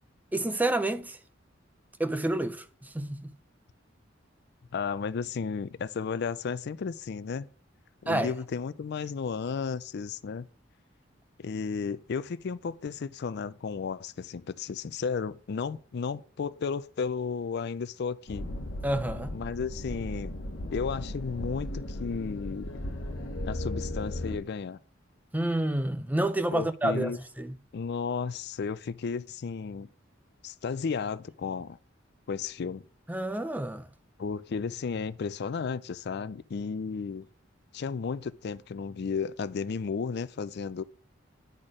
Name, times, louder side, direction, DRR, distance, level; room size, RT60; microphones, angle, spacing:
voice 1, 0.3-1.2 2.0-3.3 8.1-8.3 18.8-19.4 25.3-27.6 33.1-33.9, right 1 dB, 10° right, 0.4 m, -29 dB
voice 2, 4.7-7.5 8.0-10.5 11.4-18.5 19.3-20.3 20.7-22.8 23.4-24.8 26.5-27.2 27.7-29.9 30.4-31.8 32.3-32.8 34.2-37.3 37.7-40.8, left 5 dB, 60° left, 0.4 m, -33 dB
sound 1, 18.3-24.4, left 1 dB, 85° left, 1.1 m, -36 dB
10.5 x 4.3 x 4.9 m
head